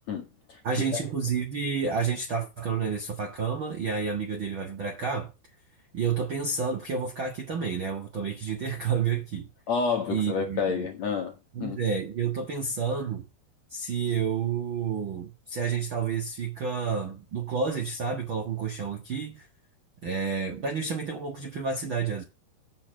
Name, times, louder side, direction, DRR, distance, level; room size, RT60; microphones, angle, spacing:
voice 1, 0.1-0.6 0.9-1.0 9.7-11.3 11.6-11.8, left 5 dB, 60° left, 2.0 m, -29 dB
voice 2, 0.6-5.3 5.9-9.5 10.1-10.9 11.5-13.2 13.7-19.4 20.0-22.2, right 6 dB, 55° right, 1.3 m, -30 dB
7.4 x 7.0 x 7.6 m
omnidirectional pair, 4.7 m